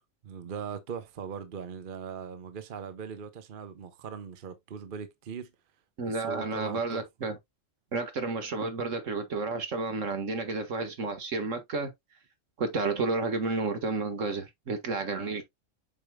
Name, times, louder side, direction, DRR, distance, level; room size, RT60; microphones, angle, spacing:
voice 1, 0.2-5.5 6.1-7.1 15.1-15.4, right 6 dB, 45° right, 0.9 m, -40 dB
voice 2, 6.0-7.4 7.9-11.9 12.6-15.4, right 3 dB, 75° right, 1.9 m, -31 dB
8.3 x 5.2 x 2.2 m
omnidirectional pair, 1.3 m